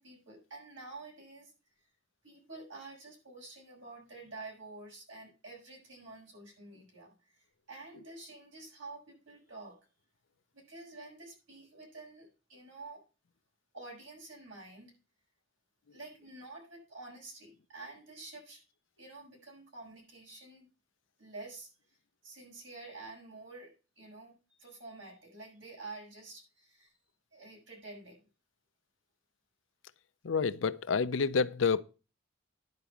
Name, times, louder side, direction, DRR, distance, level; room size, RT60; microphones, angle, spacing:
voice 1, 0.0-1.5 1.8-1.9 2.2-9.8 10.5-13.0 13.7-14.9 15.9-18.6 19.0-20.7 21.2-22.0 22.2-27.0 27.3-28.2, right 3 dB, 80° right, 6.5 m, -49 dB
voice 2, 30.2-31.8, left 5 dB, 75° left, 0.5 m, -28 dB
11.0 x 4.9 x 7.0 m
head